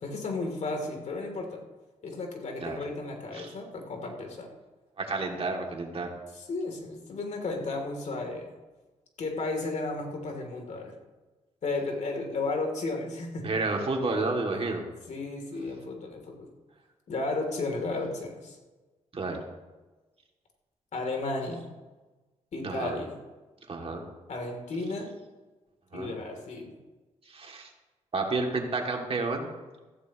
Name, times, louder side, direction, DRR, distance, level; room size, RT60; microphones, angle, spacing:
voice 1, 0.0-1.6 2.0-4.5 6.5-8.5 9.2-10.9 11.6-13.5 15.1-16.5 17.1-18.6 20.9-21.7 22.5-23.2 24.3-25.1 25.9-26.7, left 3 dB, 65° left, 2 dB, 3.3 m, -33 dB
voice 2, 5.0-6.1 13.4-14.8 19.1-19.4 22.6-22.9 23.7-24.0 25.9-26.1 27.2-27.7 28.1-29.5, right 3 dB, 50° right, 1 dB, 2.7 m, -30 dB
15.0 x 14.5 x 3.1 m, 1.2 s
cardioid pair, 65°, 13 cm